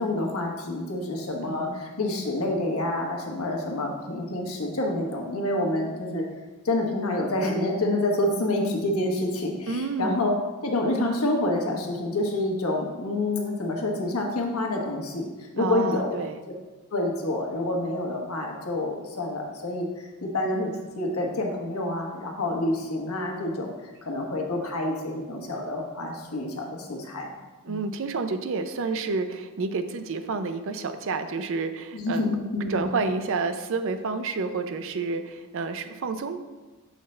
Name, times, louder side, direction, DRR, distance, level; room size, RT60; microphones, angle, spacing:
voice 1, 0.0-6.2 6.6-10.3 10.6-15.3 15.6-16.1 16.9-20.7 21.0-23.7 24.0-27.3 27.7-27.8 31.9-32.9, left 1 dB, 85° left, 0 dB, 1.2 m, -28 dB
voice 2, 1.4-1.8 9.7-10.2 15.6-16.4 27.6-36.4, right 4 dB, 60° right, 9 dB, 0.5 m, -29 dB
6.8 x 5.7 x 3.2 m, 1.2 s
head